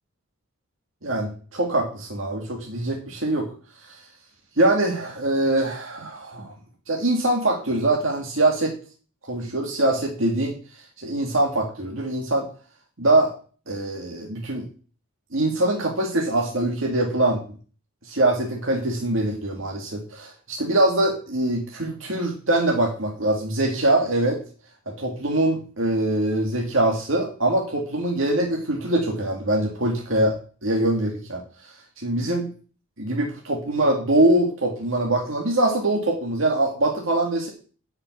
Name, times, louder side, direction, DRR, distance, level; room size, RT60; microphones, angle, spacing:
voice 1, 1.0-3.5 3.9-4.0 4.6-6.5 6.9-8.7 9.3-10.6 11.0-12.5 13.0-13.3 13.7-14.7 15.3-17.4 18.1-24.4 24.9-30.4 30.6-31.4 32.0-32.5 33.0-37.5, right 1 dB, 70° right, 0 dB, 2.2 m, -23 dB
10.0 x 5.9 x 8.3 m, 0.40 s
head